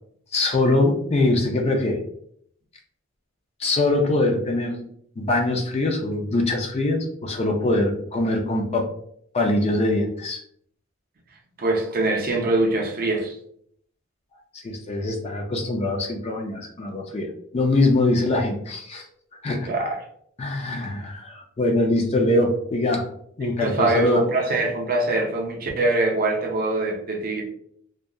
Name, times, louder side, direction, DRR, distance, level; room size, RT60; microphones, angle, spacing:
voice 1, 0.3-2.0 3.6-4.8 5.2-8.9 9.3-10.4 14.5-17.3 17.5-19.0 19.4-19.7 20.4-23.0 23.4-24.2, left 2 dB, 30° left, 2 dB, 0.4 m, -23 dB
voice 2, 11.6-13.4 19.7-20.0 23.4-27.4, right 2 dB, 45° right, 0 dB, 0.5 m, -23 dB
2.7 x 2.2 x 2.3 m, 0.66 s
head